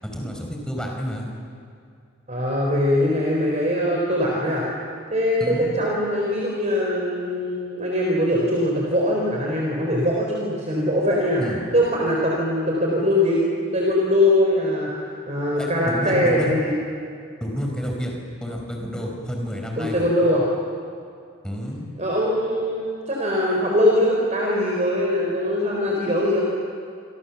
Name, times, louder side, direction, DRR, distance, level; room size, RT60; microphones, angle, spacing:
voice 1, 0.0-1.3 5.4-5.7 11.4-11.6 15.5-16.5 17.4-18.1 18.4-20.1 21.4-21.9, equal, 5° left, 0 dB, 4.5 m, -30 dB
voice 2, 2.3-4.6 5.1-11.4 11.7-13.4 13.7-14.9 15.3-16.7 19.8-20.4 22.0-26.4, left 1 dB, 35° right, -2 dB, 4.1 m, -22 dB
28.0 x 25.0 x 7.1 m, 2.4 s
head